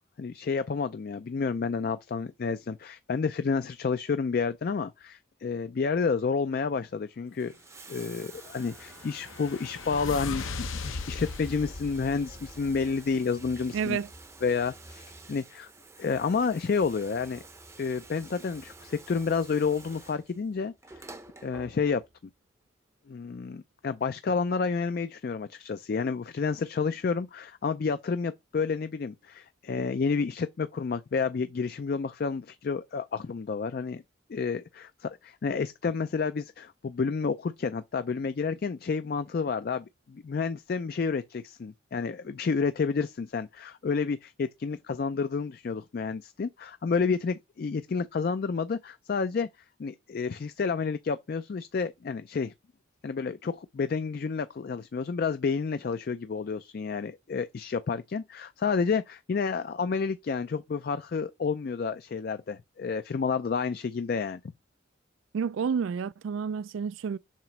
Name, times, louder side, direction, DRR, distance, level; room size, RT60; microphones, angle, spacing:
voice 1, 0.2-7.5 7.9-14.0 14.4-15.7 16.0-17.4 17.8-21.0 21.4-22.0 23.1-34.0 34.3-49.5 49.8-52.5 53.0-64.4, left 5 dB, 45° left, 0.3 m, -30 dB
Bathtub (filling or washing), 7.3-22.2 23.3-23.4, right 3 dB, 15° right, 0.6 m, -50 dB
sound 1, 8.3-13.2, left 4 dB, 80° left, 0.8 m, -38 dB
voice 2, 13.7-14.1 65.3-67.2, right 6 dB, 75° right, 0.3 m, -30 dB
7.3 x 3.0 x 5.9 m
head